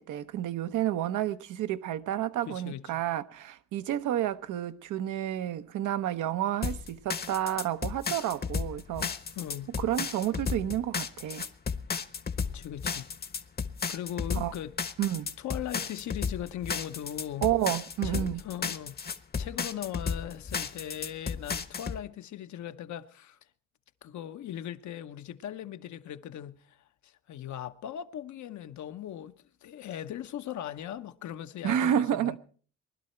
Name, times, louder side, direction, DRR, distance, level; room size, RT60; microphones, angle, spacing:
voice 1, 0.0-9.1 9.8-11.4 14.3-14.5 15.0-15.3 17.4-18.4 31.6-32.4, right 11 dB, 80° right, 0.9 m, -30 dB
voice 2, 2.5-3.0 9.4-9.7 12.5-13.1 13.9-14.7 15.4-17.5 18.0-19.0 19.4-23.4 24.0-26.8 27.0-32.4, left 11 dB, 70° left, 0.9 m, -39 dB
sound 1, 6.6-22.0, left 5 dB, 30° left, 0.9 m, -33 dB
20.0 x 11.5 x 4.4 m
cardioid pair, 90°, 30 cm